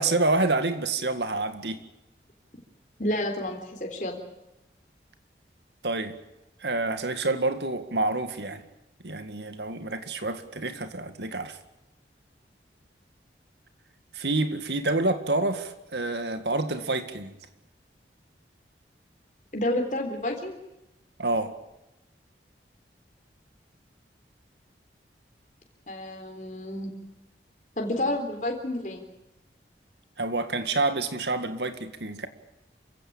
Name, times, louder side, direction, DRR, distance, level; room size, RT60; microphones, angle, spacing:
voice 1, 0.0-1.8 5.8-6.2 6.6-8.7 9.0-11.6 14.1-17.4 21.2-21.6 30.2-32.3, right 2 dB, 75° right, 2.0 m, -28 dB
voice 2, 3.0-4.2 19.5-20.6 25.9-26.9 27.8-29.0, left 1 dB, 45° left, 3.7 m, -30 dB
27.5 x 16.5 x 8.7 m
head